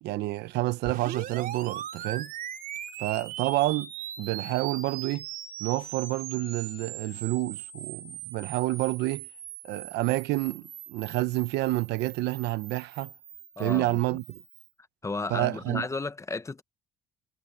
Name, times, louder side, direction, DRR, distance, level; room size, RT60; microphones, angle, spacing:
voice 1, 0.0-2.3 3.0-3.9 4.2-5.3 5.6-9.3 9.6-13.1 13.6-14.2 15.3-15.8, right 18 dB, 85° right, 0.9 m, -29 dB
sound 1, 0.8-14.7, right 10 dB, 55° right, 4.0 m, -40 dB
voice 2, 13.6-14.0 15.0-16.6, left 3 dB, 15° left, 0.9 m, -33 dB
cardioid pair, 110°, 17 cm